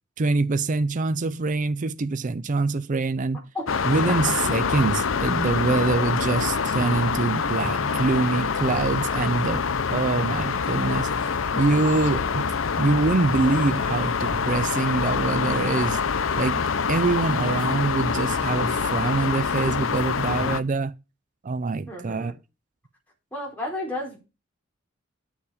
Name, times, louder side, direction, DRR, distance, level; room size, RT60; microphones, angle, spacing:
voice 1, 0.2-3.4 3.8-12.5 12.8-16.0 16.3-20.9 21.4-22.3, right 3 dB, 40° right, 0.5 m, -25 dB
sound 1, 3.7-20.6, left 5 dB, 70° left, 0.7 m, -25 dB
voice 2, 21.9-22.3 23.3-24.2, left 1 dB, 10° left, 4.5 m, -32 dB
10.0 x 7.0 x 5.0 m
head